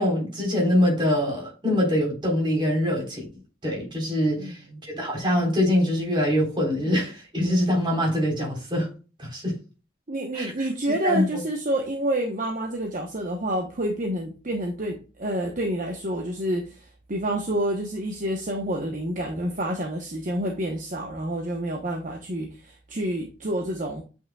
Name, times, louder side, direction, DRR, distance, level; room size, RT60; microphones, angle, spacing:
voice 1, 0.0-3.2 3.6-8.9 9.2-9.6 10.3-10.7 11.0-11.4, left 1 dB, 25° right, 3.8 m, -24 dB
voice 2, 4.4-4.8 10.1-24.0, right 1 dB, 45° right, 1.0 m, -28 dB
8.6 x 5.6 x 2.3 m
head